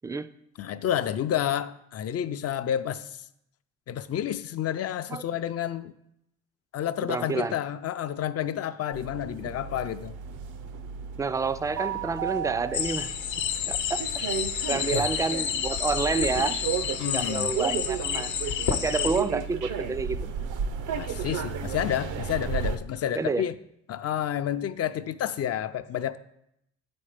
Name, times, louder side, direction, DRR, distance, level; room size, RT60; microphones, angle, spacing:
voice 1, 0.6-3.2 3.9-5.9 6.7-10.1 14.9-15.1 17.0-17.5 21.0-23.6 23.9-26.2, left 10 dB, 55° left, 12 dB, 0.5 m, -30 dB
voice 2, 7.1-7.6 11.2-13.1 13.7-14.0 14.7-16.6 17.1-18.3 18.7-20.3 23.1-23.5, right 4 dB, 10° right, 13 dB, 0.3 m, -29 dB
sound 1, 8.9-22.8, right 7 dB, 80° right, 0.7 m, -34 dB
sound 2, 12.7-19.2, left 8 dB, 75° left, 0.8 m, -30 dB
8.5 x 4.3 x 5.0 m, 0.78 s
cardioid pair, 90°, 30 cm